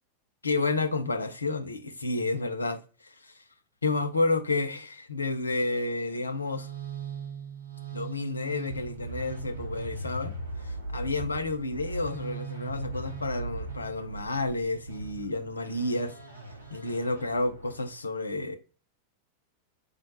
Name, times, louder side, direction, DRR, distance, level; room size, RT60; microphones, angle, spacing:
voice 1, 0.4-2.8 3.2-3.3 3.8-6.7 7.9-10.3 10.7-16.1 16.7-18.6, left 3 dB, 80° left, 0.5 m, -30 dB
sound 1, 6.1-17.9, right 3 dB, 75° right, 0.8 m, -39 dB
4.8 x 2.1 x 3.1 m
figure-of-eight pair, 90°, 0 cm